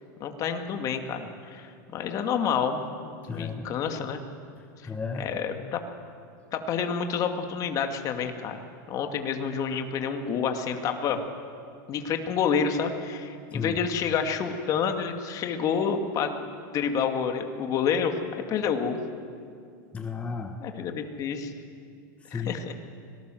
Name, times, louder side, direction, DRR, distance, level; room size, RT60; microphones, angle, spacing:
voice 1, 0.2-4.2 5.2-5.8 6.5-8.6 8.9-11.2 11.9-16.5 16.7-18.1 18.5-19.0 20.6-21.5 22.3-22.7, left 6 dB, 35° left, 5 dB, 2.4 m, -28 dB
voice 2, 3.3-3.7 4.8-5.3 13.5-13.8 19.9-20.6 22.3-22.7, left 5 dB, 10° left, 4 dB, 1.4 m, -33 dB
25.0 x 18.5 x 7.9 m, 2.3 s
supercardioid pair, 135°, 10 cm